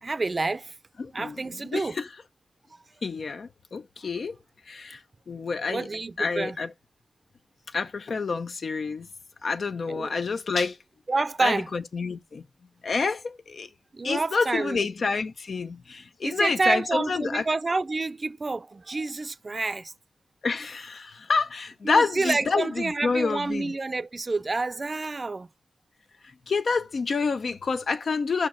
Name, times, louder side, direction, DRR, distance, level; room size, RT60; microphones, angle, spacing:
voice 1, 0.0-0.7 1.1-2.0 2.7-2.8 5.7-6.6 9.9-10.1 11.1-11.7 13.9-14.9 16.2-19.9 21.8-25.5, right 3 dB, 45° right, 0.5 m, -28 dB
voice 2, 1.0-1.4 1.7-2.1 3.0-4.4 4.7-5.0 5.3-5.9 6.2-6.7 7.7-9.1 9.4-10.8 11.4-12.5 12.8-13.7 14.0-17.4 20.4-23.7 26.5-28.5, left 4 dB, 75° left, 0.7 m, -28 dB
5.9 x 4.4 x 6.1 m
wide cardioid pair, 75°, 0 cm